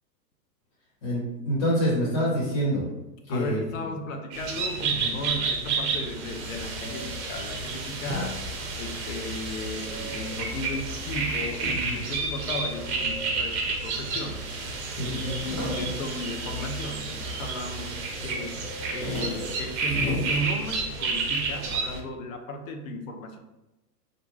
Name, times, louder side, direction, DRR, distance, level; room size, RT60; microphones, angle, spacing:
voice 1, 1.0-2.9 3.3-3.6 5.0-5.1 11.9-12.0 14.9-15.3, equal, 35° left, -7 dB, 1.1 m, -26 dB
voice 2, 3.3-8.4 8.8-14.7 15.1-17.9 18.2-18.6 18.9-23.4, left 1 dB, 55° left, 5 dB, 0.5 m, -35 dB
sound 1, 4.3-22.0, right 4 dB, 45° right, 0.6 m, -31 dB
sound 2, 7.5-10.1 10.4-12.9 13.5-14.2 14.5-14.6 14.8-17.4 17.8-18.3 18.6-21.2, left 1 dB, 5° left, 0.5 m, -37 dB
2.5 x 2.1 x 3.0 m, 0.98 s
hypercardioid pair, 130°, 49 cm